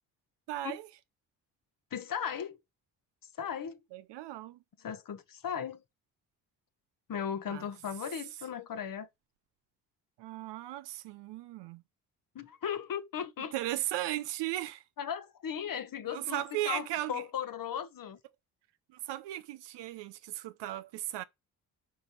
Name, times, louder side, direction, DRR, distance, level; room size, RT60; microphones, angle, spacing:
voice 1, 0.5-0.9 3.9-4.6 7.5-7.6 10.2-11.8 13.5-14.8 16.1-17.2 19.1-21.2, right 15 dB, 65° right, 0.8 m, -36 dB
voice 2, 1.9-2.6 3.4-3.8 4.8-5.8 7.1-9.1 12.3-13.6 15.0-18.2, left 8 dB, 50° left, 1.3 m, -37 dB
5.4 x 5.2 x 5.6 m
hypercardioid pair, 50°, 45 cm